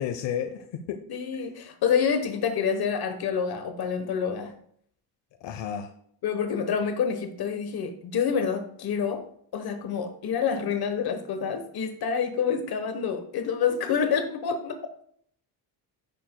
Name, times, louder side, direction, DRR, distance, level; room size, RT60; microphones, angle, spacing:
voice 1, 0.0-1.0 1.3-1.5 5.4-5.9, left 9 dB, 85° left, 5 dB, 0.9 m, -32 dB
voice 2, 1.1-4.5 6.2-9.2 9.5-14.8, left 7 dB, 60° left, 7 dB, 1.2 m, -27 dB
15.5 x 6.7 x 2.3 m, 0.64 s
cardioid pair, 135°, 41 cm